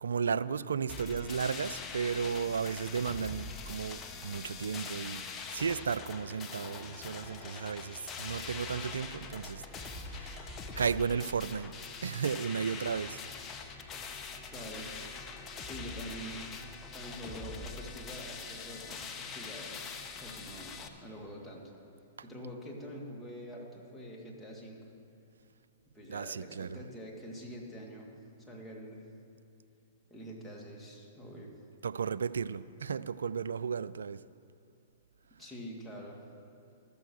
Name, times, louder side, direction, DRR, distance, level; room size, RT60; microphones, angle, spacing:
voice 1, 0.0-5.2 5.5-9.6 10.1-11.7 12.0-13.2 26.1-26.8 31.8-34.2, right 6 dB, 75° right, 0.3 m, -34 dB
sound 1, 0.9-20.9, left 4 dB, 25° left, 0.9 m, -43 dB
voice 2, 14.5-14.9 15.6-16.4 16.9-19.8 20.2-21.7 22.2-24.9 25.9-28.1 28.5-29.0 30.1-31.5 35.4-36.2, equal, 5° left, 2.3 m, -45 dB
13.5 x 7.0 x 6.3 m
figure-of-eight pair, 110°, 0 cm